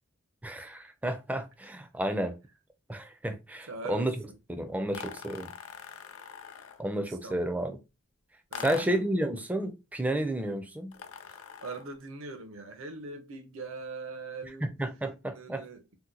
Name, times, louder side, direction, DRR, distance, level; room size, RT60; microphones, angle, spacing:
voice 1, 0.4-2.4 2.9-4.2 4.5-5.5 6.8-7.8 8.6-10.9 14.6-15.6, right 1 dB, 5° right, 0.4 m, -31 dB
voice 2, 3.7-4.1 7.2-7.6 8.5-8.9 11.3-14.7 15.3-16.0, right 3 dB, 70° right, 0.7 m, -42 dB
sound 1, 4.9-6.9 8.5-9.1 10.9-11.9, left 7 dB, 85° left, 0.4 m, -43 dB
2.8 x 2.1 x 3.7 m
head